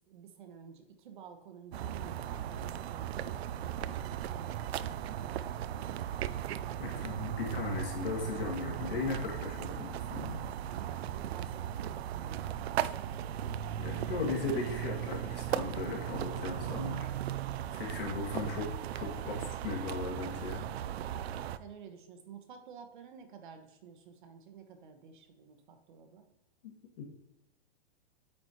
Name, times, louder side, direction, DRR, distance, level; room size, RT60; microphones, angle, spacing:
voice 1, 0.1-3.4 3.8-7.4 10.7-12.7 17.9-18.2 21.6-26.3, right 6 dB, 50° right, 6 dB, 1.0 m, -52 dB
sound 1, 1.7-21.6, right 11 dB, 80° right, 0.5 m, -37 dB
voice 2, 6.8-10.4 13.8-17.1 17.7-20.6 26.6-27.1, left 3 dB, 60° left, 0 dB, 2.1 m, -37 dB
8.8 x 4.2 x 3.0 m, 0.97 s
supercardioid pair, 170°, 31 cm